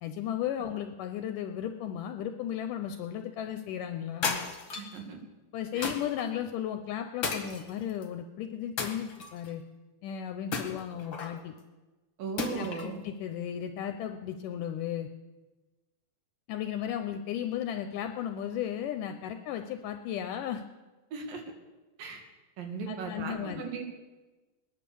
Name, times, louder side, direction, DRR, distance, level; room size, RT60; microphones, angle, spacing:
voice 1, 0.0-4.4 5.5-9.6 10.0-11.5 12.5-15.1 16.5-20.6 22.9-23.7, left 10 dB, 75° left, 6 dB, 2.3 m, -35 dB
sound 1, 4.2-5.0 5.8-6.3 7.2-8.1 8.8-9.5 10.5-11.4 12.4-12.9, left 4 dB, 45° left, 1.9 m, -34 dB
voice 2, 4.7-5.2 5.7-5.9 12.2-13.0 21.1-21.4 22.0-22.2 22.6-23.8, right 5 dB, 80° right, 3 dB, 3.8 m, -37 dB
20.0 x 10.5 x 7.0 m, 1.2 s
omnidirectional pair, 4.0 m